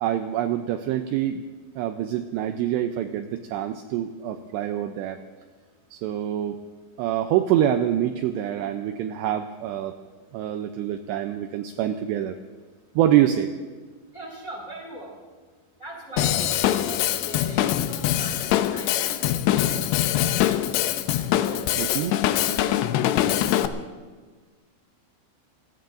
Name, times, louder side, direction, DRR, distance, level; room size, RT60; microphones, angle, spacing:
voice 1, 0.0-1.5 1.8-5.2 5.9-6.6 7.0-10.0 10.3-12.4 13.0-13.6 21.8-22.1, right 11 dB, 85° right, 7 dB, 2.5 m, -25 dB
voice 2, 14.1-15.2 15.8-20.7 21.1-22.7, equal, 25° left, -1 dB, 1.9 m, -41 dB
Drum kit / Drum, 16.2-23.7, left 12 dB, 80° left, 2.4 m, -23 dB
27.5 x 18.5 x 2.6 m, 1.4 s
omnidirectional pair, 5.6 m